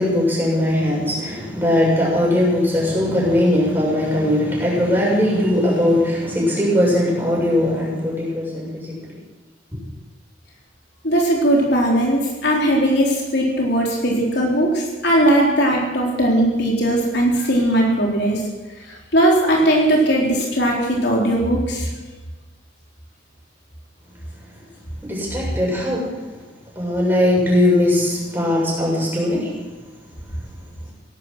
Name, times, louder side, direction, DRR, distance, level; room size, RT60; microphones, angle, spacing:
voice 1, 0.0-9.0 25.0-26.2 26.8-29.5, left 1 dB, 10° right, -5 dB, 7.3 m, -19 dB
voice 2, 11.0-18.4 18.9-21.9, right 1 dB, 60° left, -2 dB, 4.0 m, -18 dB
17.5 x 12.5 x 6.3 m, 1.2 s
head